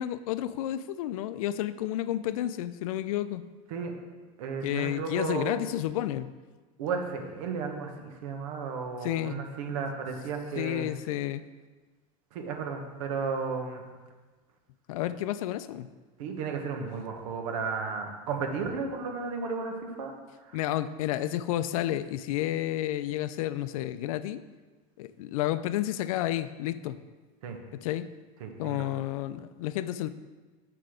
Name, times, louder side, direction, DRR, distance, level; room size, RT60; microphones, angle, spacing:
voice 1, 0.0-3.4 4.6-6.3 9.0-9.4 10.6-11.4 14.9-15.9 20.5-24.4 25.0-27.0 27.8-28.1 28.6-30.1, left 13 dB, 90° left, 14 dB, 0.5 m, -31 dB
voice 2, 4.4-5.6 6.8-10.9 12.3-13.8 16.2-20.1 20.4-20.6 27.4-27.6 28.4-28.9, right 5 dB, 80° right, 4 dB, 1.3 m, -34 dB
6.7 x 6.1 x 5.0 m, 1.3 s
supercardioid pair, 165°, 17 cm